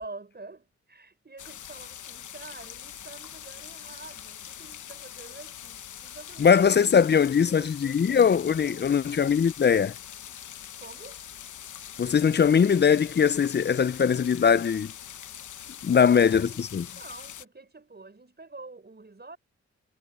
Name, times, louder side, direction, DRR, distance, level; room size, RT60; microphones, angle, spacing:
voice 1, 0.0-6.7 7.0-8.9 10.8-11.2 15.9-19.4, right 3 dB, 35° right, 6.6 m, -47 dB
sound 1, 1.4-17.5, left 9 dB, 85° left, 1.0 m, -43 dB
voice 2, 6.4-9.9 12.0-14.9 15.8-16.9, left 7 dB, 35° left, 0.5 m, -21 dB
cardioid pair, 65°, 29 cm